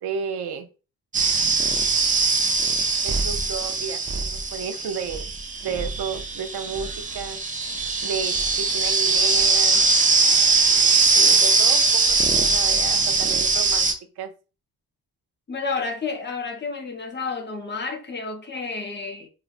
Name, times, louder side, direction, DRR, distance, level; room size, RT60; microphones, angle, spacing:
voice 1, 0.0-0.7 3.0-5.2 5.6-7.4 8.0-9.8 11.1-13.9 14.2-14.3, right 6 dB, 90° right, 0.6 m, -32 dB
sound 1, 1.1-13.9, right 4 dB, 25° right, 0.3 m, -21 dB
voice 2, 15.5-19.3, left 4 dB, 30° left, 0.6 m, -30 dB
3.9 x 2.1 x 2.4 m
wide cardioid pair, 155°, 38 cm